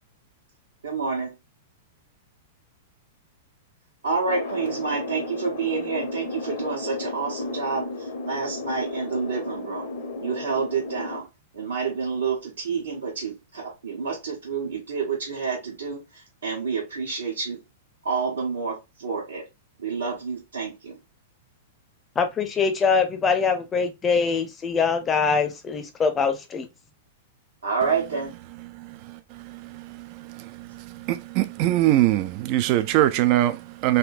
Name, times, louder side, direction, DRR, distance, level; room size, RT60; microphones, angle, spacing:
voice 1, 0.8-1.3 4.0-9.9 10.2-11.3 11.5-17.6 18.0-19.5 19.8-21.0 27.6-28.3, right 5 dB, 70° right, 1.1 m, -29 dB
sound 1, 4.3-11.2, left 3 dB, 55° left, 0.7 m, -34 dB
voice 2, 22.2-26.7, left 5 dB, 20° left, 0.6 m, -23 dB
voice 3, 29.1-34.0, right 14 dB, 40° right, 0.3 m, -23 dB
3.4 x 2.7 x 2.3 m
figure-of-eight pair, 100°, 0 cm